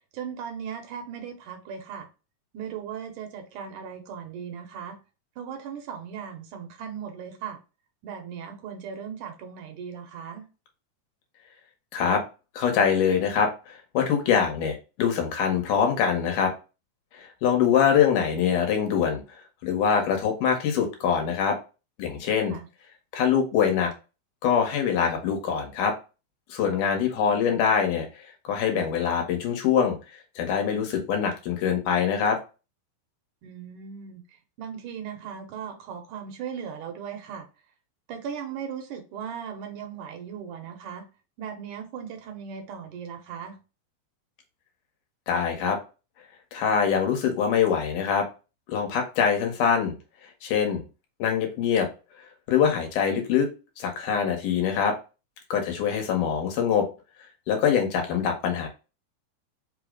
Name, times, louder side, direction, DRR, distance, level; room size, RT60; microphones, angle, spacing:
voice 1, 0.1-2.1 2.5-5.0 5.4-7.6 8.0-10.4 22.5-22.7 27.2-27.7 33.4-34.2 34.6-37.5 38.1-41.0 41.4-43.6, right 7 dB, 80° right, 2.3 m, -38 dB
voice 2, 12.6-16.5 17.1-19.2 19.6-21.6 22.0-22.6 23.1-23.9 24.4-26.0 26.5-28.1 28.4-30.0 30.4-32.4 45.3-45.8 46.5-48.3 48.7-50.0 50.4-50.8 51.2-51.9 52.5-53.5 53.8-55.0 55.5-56.9 57.5-58.7, left 7 dB, 75° left, 2.4 m, -24 dB
5.4 x 2.0 x 4.8 m
omnidirectional pair, 3.7 m